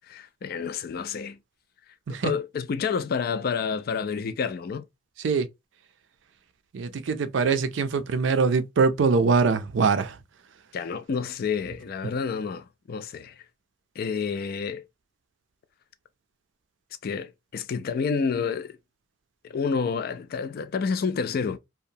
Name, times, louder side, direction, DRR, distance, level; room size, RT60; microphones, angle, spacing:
voice 1, 0.1-1.4 2.1-4.9 10.7-13.4 14.0-14.8 17.0-18.8 19.4-21.6, left 5 dB, 55° left, 0.3 m, -29 dB
voice 2, 6.7-10.2, right 5 dB, 70° right, 0.4 m, -23 dB
2.8 x 2.1 x 2.6 m
head